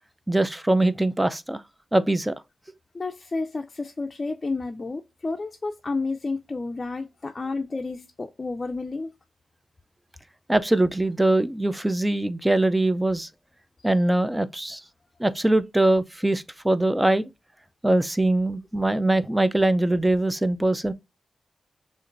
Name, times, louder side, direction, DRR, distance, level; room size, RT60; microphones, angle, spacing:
voice 1, 0.3-1.6 1.9-2.3 10.5-13.3 13.8-14.8 15.2-17.3 17.8-20.9, right 1 dB, 15° right, 0.5 m, -22 dB
voice 2, 2.9-9.1, left 3 dB, 40° left, 0.4 m, -31 dB
6.4 x 2.5 x 2.5 m
supercardioid pair, 40°, 0 cm